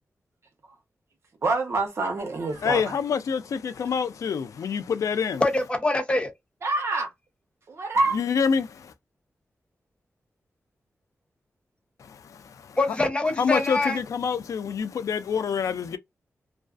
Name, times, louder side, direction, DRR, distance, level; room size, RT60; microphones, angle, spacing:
voice 1, 1.4-3.0 6.6-7.1 7.7-8.2, right 3 dB, 55° right, 0.8 m, -26 dB
voice 2, 2.6-5.4 8.1-8.9 12.0-12.8 13.4-16.0, left 6 dB, 90° left, 0.3 m, -27 dB
voice 3, 5.4-6.3 12.8-14.0, left 2 dB, 20° left, 0.6 m, -24 dB
2.3 x 2.3 x 2.4 m
wide cardioid pair, 165°, 5 cm